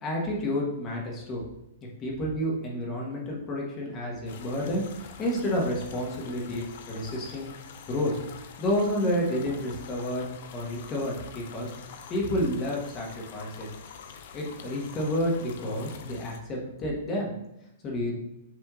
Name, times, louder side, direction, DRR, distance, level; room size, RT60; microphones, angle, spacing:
voice 1, 0.0-1.4 2.0-7.5 7.9-10.3 10.5-11.7 12.1-13.7 14.3-17.3 17.8-18.2, left 1 dB, 30° left, -2 dB, 1.2 m, -30 dB
sound 1, 4.3-16.4, left 6 dB, 60° left, 0.5 m, -46 dB
5.9 x 3.4 x 2.4 m, 0.85 s
hypercardioid pair, 140°, 0 cm